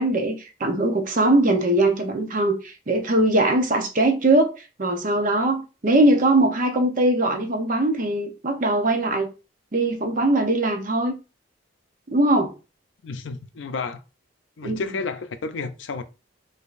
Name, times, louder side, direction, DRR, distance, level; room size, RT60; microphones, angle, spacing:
voice 1, 0.0-9.3 9.7-11.1 12.1-12.5 14.6-14.8, right 1 dB, 45° right, 0.7 m, -21 dB
voice 2, 13.0-14.0 14.6-16.0, left 4 dB, 70° left, 0.5 m, -31 dB
4.8 x 2.7 x 2.5 m
head